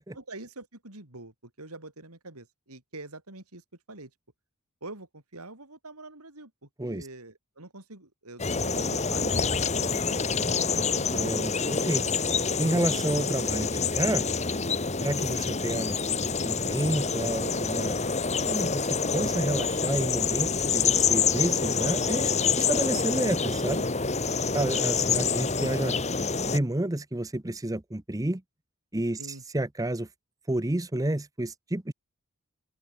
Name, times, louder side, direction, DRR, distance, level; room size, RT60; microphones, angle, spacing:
voice 1, 0.0-1.3 1.6-3.6 3.9-4.1 4.8-11.1 29.2-29.4, right 2 dB, 85° right, 5.1 m, -45 dB
sound 1, 8.4-26.6, left 5 dB, 30° left, 1.8 m, -27 dB
voice 2, 11.1-12.0 12.6-14.3 15.0-18.0 18.5-23.8 24.5-25.9 26.4-28.4 28.9-29.2 29.5-30.1 30.5-31.9, right 1 dB, 15° right, 0.7 m, -30 dB
open air
head